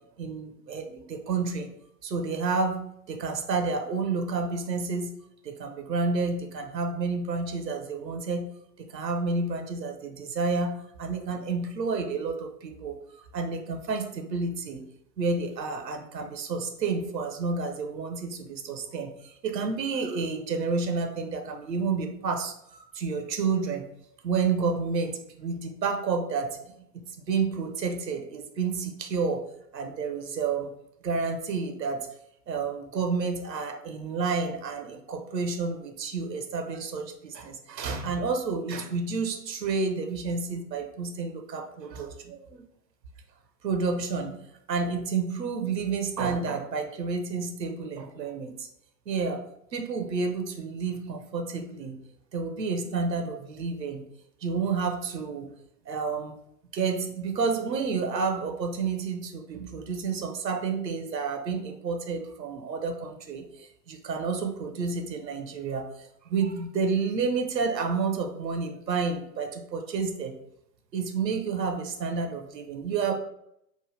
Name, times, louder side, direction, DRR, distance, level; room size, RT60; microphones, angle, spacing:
voice 1, 0.2-1.7 2.0-5.2 5.4-8.5 8.8-14.8 15.2-23.9 24.2-26.6 26.9-29.4 29.7-30.7 31.0-32.1 32.5-42.6 43.6-48.7 49.1-49.4 49.7-52.0 52.3-54.1 54.4-55.5 55.9-56.3 56.7-70.3 70.9-73.1, right 4 dB, 80° right, 4 dB, 0.6 m, -30 dB
3.0 x 2.1 x 3.1 m, 0.77 s
figure-of-eight pair, 100°, 49 cm